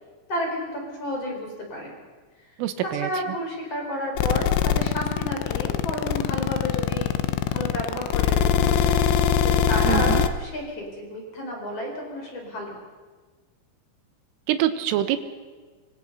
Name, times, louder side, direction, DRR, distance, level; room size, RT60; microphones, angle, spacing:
voice 1, 0.3-1.9 2.8-9.0 9.4-12.8, equal, 30° left, 1 dB, 5.1 m, -31 dB
voice 2, 2.6-3.1 9.9-10.2 14.5-15.2, right 12 dB, 90° right, 11 dB, 3.7 m, -25 dB
sound 1, 4.2-10.3, left 9 dB, 85° left, 3.6 m, -21 dB
26.0 x 25.0 x 5.5 m, 1.4 s
omnidirectional pair, 5.7 m